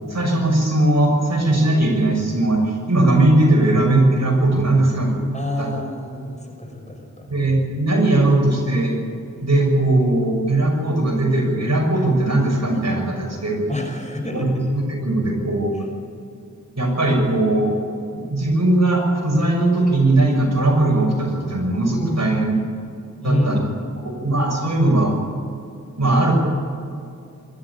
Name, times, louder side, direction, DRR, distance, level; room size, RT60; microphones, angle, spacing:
voice 1, 0.1-5.2 5.6-5.7 7.3-8.9 9.4-13.6 14.3-15.7 16.8-17.8 18.1-22.6 23.2-23.6 24.2-25.1 26.0-26.4, right 2 dB, 55° right, 0 dB, 6.2 m, -19 dB
voice 2, 5.3-7.3 13.7-14.5 15.7-15.8 23.2-24.2, left 1 dB, 20° left, 2 dB, 6.2 m, -28 dB
24.5 x 13.0 x 9.8 m, 2.5 s
cardioid pair, 45°, 32 cm